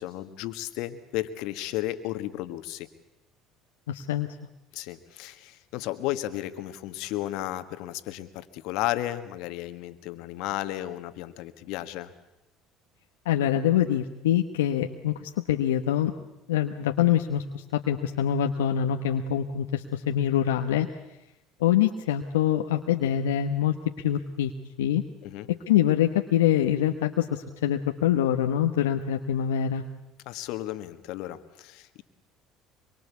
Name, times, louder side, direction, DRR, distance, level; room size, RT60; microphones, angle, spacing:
voice 1, 0.0-2.9 4.7-12.1 25.2-25.5 30.2-32.0, left 14 dB, 70° left, 11 dB, 1.6 m, -33 dB
voice 2, 3.9-4.3 13.2-16.1 16.5-20.9 21.6-24.5 24.8-25.0 25.5-29.8, left 10 dB, 90° left, 4 dB, 1.0 m, -25 dB
25.0 x 23.5 x 8.3 m, 0.92 s
hypercardioid pair, 75°, 0 cm